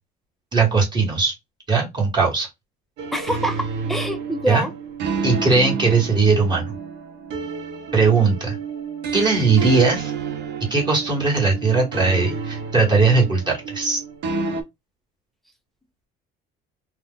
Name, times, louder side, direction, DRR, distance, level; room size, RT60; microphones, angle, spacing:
voice 1, 0.5-1.3 1.7-2.5 4.5-4.7 5.2-6.7 7.9-8.6 9.1-10.1 10.7-14.0, right 4 dB, 20° right, 1.0 m, -19 dB
sound 1, 3.0-14.6, right 5 dB, 60° right, 0.7 m, -30 dB
voice 2, 3.1-4.7, right 1 dB, ahead, 0.4 m, -25 dB
2.7 x 2.0 x 3.6 m
cardioid pair, 160°, 20 cm